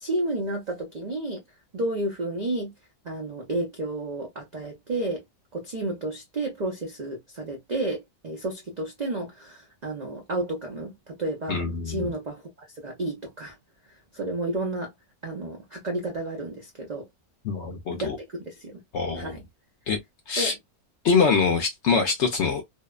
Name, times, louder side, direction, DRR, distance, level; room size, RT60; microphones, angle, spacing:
voice 1, 0.0-1.4 1.7-2.7 3.0-5.2 5.5-13.6 14.1-14.9 15.2-17.1 17.9-18.2 18.5-18.8 19.2-19.4 20.4-20.5, right 2 dB, 60° right, 0.4 m, -31 dB
voice 2, 11.5-12.1 17.4-18.2 18.9-19.4 19.9-20.0 20.3-20.5 21.0-22.6, left 5 dB, 65° left, 0.7 m, -24 dB
2.7 x 2.0 x 2.2 m
omnidirectional pair, 1.6 m